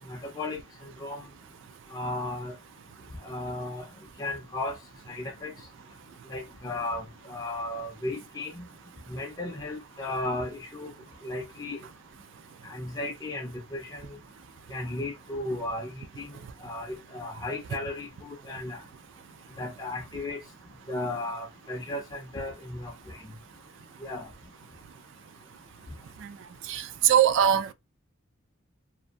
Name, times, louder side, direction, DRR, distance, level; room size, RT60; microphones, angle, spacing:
voice 1, 0.1-1.2 1.9-2.5 3.2-3.9 4.2-4.8 5.1-5.5 6.3-8.7 9.1-10.9 11.2-11.8 12.6-14.2 14.7-16.3 16.6-18.8 19.6-20.4 20.9-23.2 24.0-24.3, left 2 dB, 20° left, 0.5 m, -35 dB
voice 2, 26.7-27.7, right 9 dB, 60° right, 0.3 m, -21 dB
2.5 x 2.5 x 2.2 m
head